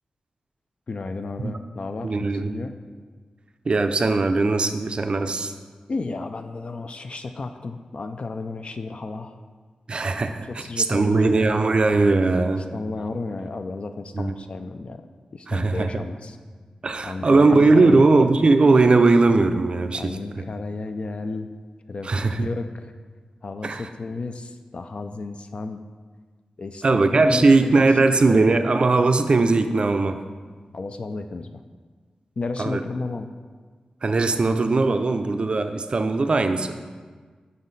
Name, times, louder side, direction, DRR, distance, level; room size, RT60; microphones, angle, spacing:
voice 1, 0.9-2.1 2.4-2.8 5.9-9.4 10.6-11.6 12.5-16.4 17.0-18.0 19.9-21.5 21.9-22.1 22.4-22.9 23.4-25.8 26.6-27.7 28.1-28.4 30.7-31.5 32.4-33.3, left 3 dB, 50° left, 8 dB, 0.3 m, -33 dB
voice 2, 2.0-2.6 3.7-5.5 9.9-12.6 14.1-14.3 15.5-15.9 16.8-20.1 22.0-22.5 23.6-23.9 26.8-30.2 32.6-32.8 34.0-36.7, right 3 dB, 45° right, 7 dB, 0.4 m, -19 dB
5.6 x 5.1 x 4.0 m, 1.5 s
wide cardioid pair, 90°, 2 cm